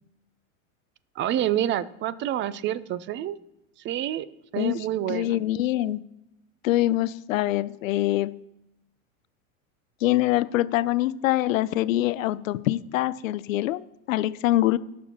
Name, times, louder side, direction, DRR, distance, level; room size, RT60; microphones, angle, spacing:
voice 1, 1.2-3.4 3.8-4.3 4.5-5.4, right 12 dB, 30° right, 0.4 m, -28 dB
voice 2, 4.6-6.0 6.6-8.4 10.0-14.8, left 15 dB, 85° left, 0.5 m, -24 dB
18.5 x 6.3 x 2.9 m
hypercardioid pair, 100°, 39 cm